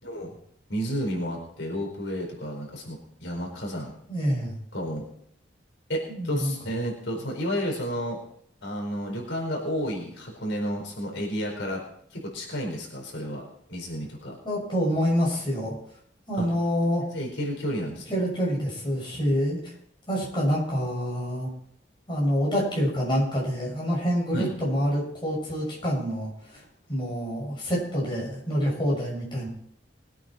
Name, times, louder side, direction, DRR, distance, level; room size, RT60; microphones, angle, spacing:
voice 1, 0.0-0.3 0.7-3.9 4.7-5.1 5.9-8.2 8.6-11.8 12.1-13.4 13.7-14.3 16.3-16.5 17.0-18.0 24.3-24.5, equal, 80° left, -1 dB, 4.6 m, -31 dB
voice 2, 4.1-4.6 6.1-6.5 14.4-15.8 16.3-17.0 18.1-19.7 20.1-21.5 22.1-26.6 26.9-29.5, equal, 25° left, -3 dB, 6.6 m, -27 dB
21.5 x 9.0 x 4.5 m, 0.67 s
head